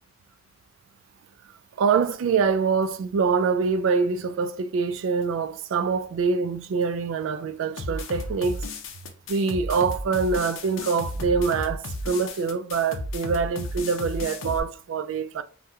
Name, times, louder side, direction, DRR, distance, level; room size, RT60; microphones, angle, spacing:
voice 1, 1.8-8.6 9.3-15.4, right 5 dB, 70° right, 0.3 m, -25 dB
sound 1, 7.8-14.6, left 1 dB, 70° left, 0.5 m, -34 dB
3.5 x 2.1 x 2.7 m
head